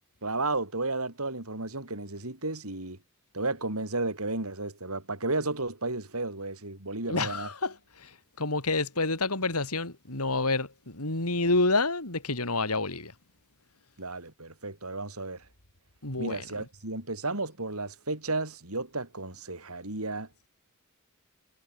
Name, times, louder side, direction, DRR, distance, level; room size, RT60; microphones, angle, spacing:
voice 1, 0.2-3.0 3.3-7.5 14.0-15.5 16.2-20.3, right 2 dB, 80° right, 6.3 m, -33 dB
voice 2, 7.1-13.1 16.0-16.5, left 3 dB, 90° left, 4.8 m, -29 dB
head